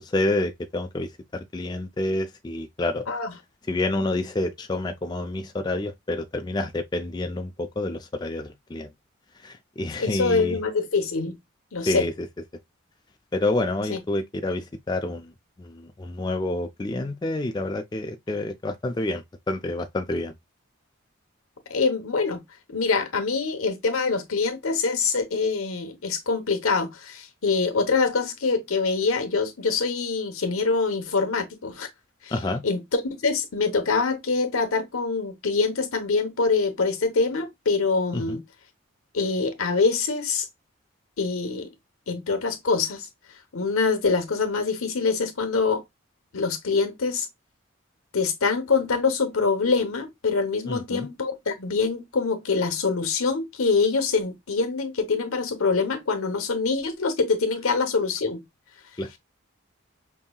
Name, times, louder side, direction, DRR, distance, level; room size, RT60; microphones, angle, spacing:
voice 1, 0.1-3.0 3.7-8.9 9.4-10.6 11.9-12.3 13.3-15.3 15.6-20.3 32.3-32.6 38.1-38.4 50.7-51.1 59.0-59.2, left 2 dB, 20° left, 0.3 m, -28 dB
voice 2, 10.0-11.3 11.7-12.1 13.9-14.0 21.7-22.4 22.7-31.9 32.2-32.4 32.6-38.4 39.1-40.5 41.2-41.7 42.1-43.1 43.5-45.8 46.3-47.3 48.1-58.4, left 4 dB, 85° left, 0.9 m, -24 dB
5.4 x 2.7 x 2.2 m
head